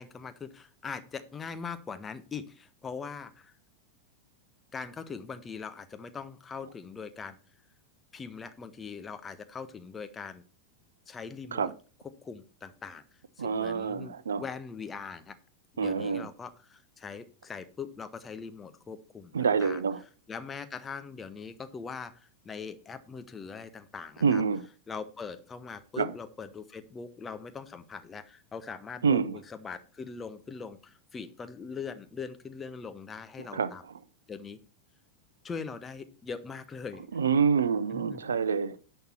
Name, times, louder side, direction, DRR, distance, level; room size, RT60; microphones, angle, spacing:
voice 1, 0.0-3.5 4.7-7.4 8.1-10.4 11.1-11.7 12.2-13.0 13.4-15.3 15.7-19.8 20.3-22.1 22.4-24.4 24.9-33.8 34.3-34.6 35.4-37.0 37.9-38.2, left 5 dB, 20° left, 1.0 m, -41 dB
voice 2, 13.4-14.4 15.8-16.3 19.3-20.0 24.2-24.6 26.0-26.1 29.0-29.4 33.5-33.7 37.1-38.8, right 6 dB, 70° right, 0.6 m, -27 dB
10.5 x 6.9 x 4.4 m
figure-of-eight pair, 90°, 0 cm